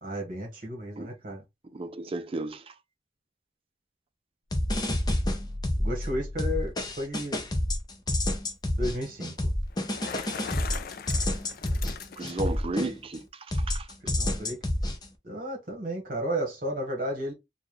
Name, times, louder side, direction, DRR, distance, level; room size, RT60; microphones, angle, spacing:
voice 1, 0.0-1.4 5.8-7.4 8.8-9.3 14.0-14.6 15.2-17.3, equal, 50° right, 1.3 m, -33 dB
voice 2, 1.7-2.6 12.2-13.2 13.7-13.9, right 2 dB, 30° right, 0.5 m, -33 dB
sound 1, 4.5-6.1 6.4-13.2 13.5-15.1, left 1 dB, 25° left, 0.7 m, -28 dB
sound 2, 5.0-7.6, left 1 dB, 70° right, 0.8 m, -38 dB
Bicycle, 9.7-12.6, left 6 dB, 55° left, 0.4 m, -40 dB
4.2 x 2.3 x 3.1 m
head